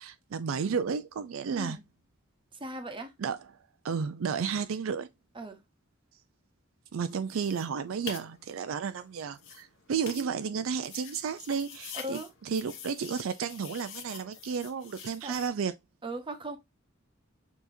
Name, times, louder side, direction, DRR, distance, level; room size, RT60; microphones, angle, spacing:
voice 1, 0.0-1.8 3.2-3.4 3.8-5.1 6.9-15.7, right 6 dB, 75° right, 0.4 m, -32 dB
voice 2, 1.5-1.8 2.5-3.1 5.3-5.6 11.9-12.3 15.2-15.3 16.0-16.6, right 1 dB, 25° right, 0.9 m, -38 dB
sound 1, 7.1-15.5, left 7 dB, 65° left, 1.0 m, -46 dB
6.8 x 2.9 x 2.6 m
head